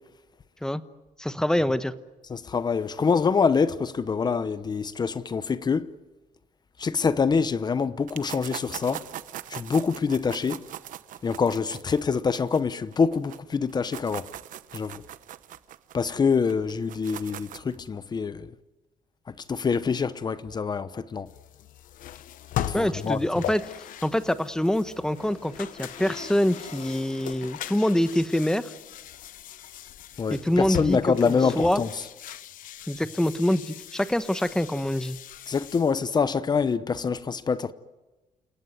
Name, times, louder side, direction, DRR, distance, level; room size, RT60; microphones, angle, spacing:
voice 1, 1.2-1.9 22.7-23.7 24.0-28.7 30.3-31.8 32.9-35.2, left 1 dB, 5° left, 1.1 m, -25 dB
voice 2, 2.3-5.9 6.8-9.1 9.5-10.6 11.2-14.3 14.7-15.0 15.9-18.5 19.3-21.3 22.6-23.3 30.2-31.9 35.5-37.7, left 5 dB, 30° left, 0.9 m, -25 dB
sound 1, 8.1-13.4 13.7-17.8, right 11 dB, 80° right, 1.0 m, -41 dB
sound 2, 21.3-36.0, left 12 dB, 85° left, 1.0 m, -39 dB
sound 3, 24.1-30.5 30.8-30.9, left 6 dB, 60° left, 3.8 m, -48 dB
29.5 x 18.0 x 9.5 m
cardioid pair, 140°, 13 cm